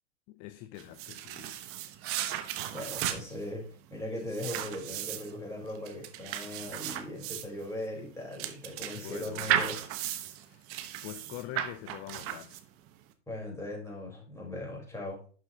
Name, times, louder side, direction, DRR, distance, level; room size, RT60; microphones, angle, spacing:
voice 1, 0.3-1.6 8.9-9.7 10.4-10.7 11.0-12.6, left 15 dB, 25° left, 0.4 m, -45 dB
sound 1, 0.8-12.9, right 12 dB, 35° right, 1.0 m, -35 dB
voice 2, 2.7-3.6 3.9-9.8 13.3-15.2, left 1 dB, 5° left, 4.0 m, -39 dB
11.0 x 6.0 x 2.8 m
hypercardioid pair, 105°, 38 cm